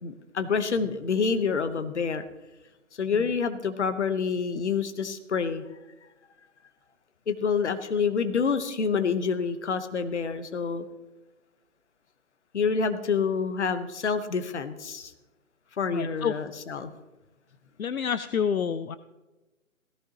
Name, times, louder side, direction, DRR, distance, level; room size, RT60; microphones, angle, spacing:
voice 1, 0.0-2.2 3.0-5.6 7.3-10.9 12.5-15.1 15.8-16.9, left 5 dB, 50° left, 11 dB, 1.0 m, -27 dB
voice 2, 15.9-16.3 17.8-19.0, left 7 dB, 70° left, 13 dB, 0.6 m, -28 dB
16.5 x 14.0 x 2.9 m, 1.1 s
figure-of-eight pair, 145°, 43 cm